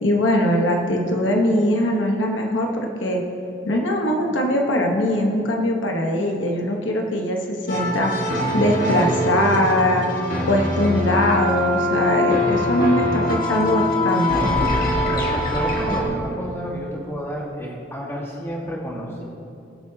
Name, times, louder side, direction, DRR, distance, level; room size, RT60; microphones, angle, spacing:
voice 1, 0.0-3.2 3.7-8.1 8.5-10.1 10.5-14.6, left 1 dB, 75° left, 1 dB, 1.1 m, -21 dB
sound 1, 7.7-16.0, left 1 dB, 45° left, 1.8 m, -23 dB
voice 2, 15.1-19.2, equal, 15° left, -3 dB, 1.6 m, -30 dB
21.5 x 7.8 x 2.8 m, 2.6 s
head